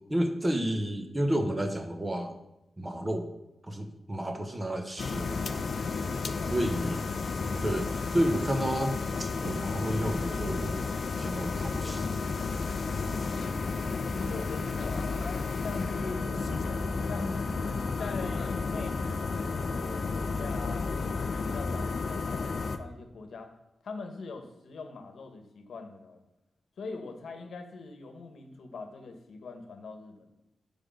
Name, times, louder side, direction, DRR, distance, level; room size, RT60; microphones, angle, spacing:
voice 1, 0.1-2.4 2.8-3.3 3.6-5.7 6.5-7.0 7.5-10.8 11.2-12.1, right 1 dB, 15° right, 6 dB, 0.8 m, -31 dB
sound 1, 5.0-22.8, left 4 dB, 55° left, 0.5 m, -32 dB
voice 2, 12.9-13.5 14.2-15.3 15.6-16.4 17.0-17.4 18.0-23.5 23.8-26.2 26.8-30.3, left 3 dB, 80° left, 6 dB, 1.1 m, -42 dB
Bass guitar, 16.0-22.2, equal, 25° left, 1.2 m, -47 dB
7.0 x 5.0 x 6.3 m, 0.90 s
wide cardioid pair, 145°, 0 cm